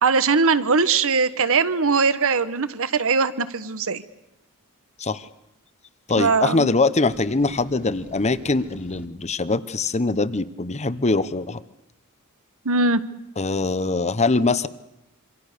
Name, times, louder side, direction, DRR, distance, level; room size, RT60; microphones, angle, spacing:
voice 1, 0.0-4.0 6.2-6.7 12.6-13.0, right 4 dB, 65° right, 13 dB, 1.3 m, -20 dB
voice 2, 6.1-11.6 13.4-14.7, left 3 dB, 30° left, 14 dB, 1.0 m, -22 dB
sound 1, 7.1-9.1, equal, 5° right, 2.0 m, -44 dB
26.5 x 25.5 x 6.8 m, 0.89 s
head